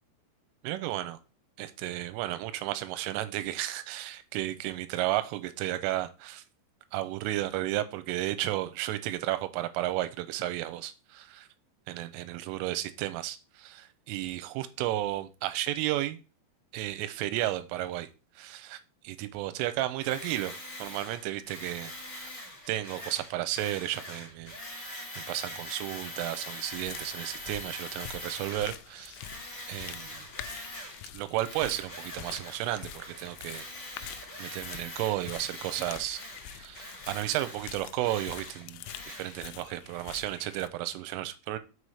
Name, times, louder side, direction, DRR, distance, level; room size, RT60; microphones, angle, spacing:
voice 1, 0.6-1.2 1.6-6.4 6.9-11.5 11.9-16.2 16.7-18.1 18.4-18.8 19.0-21.9 22.2-22.3 22.7-29.2 29.7-30.3 31.1-34.1 34.4-36.2 36.5-41.6, right 14 dB, 85° right, 11 dB, 3.1 m, -33 dB
Tools, 20.0-28.8 29.1-31.1 31.4-39.5, left 1 dB, 30° left, 2.2 m, -43 dB
sound 1, 26.7-40.7, left 12 dB, 85° left, 3.2 m, -46 dB
6.4 x 5.6 x 4.8 m, 0.31 s
omnidirectional pair, 5.9 m